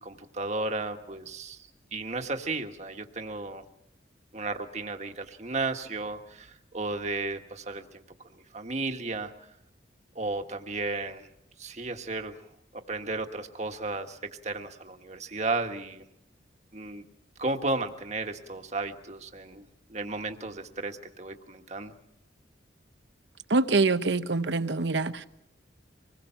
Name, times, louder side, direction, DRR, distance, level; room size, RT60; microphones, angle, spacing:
voice 1, 0.0-3.6 4.3-8.0 8.3-9.3 10.1-11.3 11.6-12.4 12.7-14.2 14.4-16.0 16.7-17.0 17.4-21.9, right 3 dB, 40° right, 1.6 m, -34 dB
voice 2, 23.5-25.2, right 3 dB, 75° right, 1.0 m, -25 dB
25.5 x 21.0 x 5.8 m
head